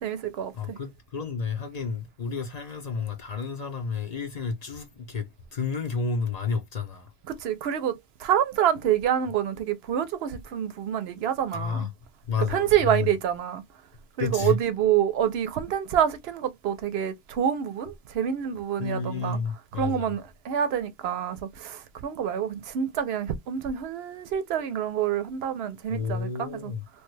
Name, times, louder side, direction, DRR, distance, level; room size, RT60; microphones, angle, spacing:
voice 1, 0.0-0.8 7.3-11.9 12.5-13.6 14.2-19.4 19.7-26.7, right 9 dB, 85° right, 0.8 m, -27 dB
voice 2, 0.5-5.3 5.5-7.1 11.5-11.9 12.3-13.1 14.2-14.6 18.8-20.1 25.9-26.8, left 5 dB, 45° left, 0.6 m, -31 dB
3.1 x 2.1 x 3.1 m
omnidirectional pair, 1.0 m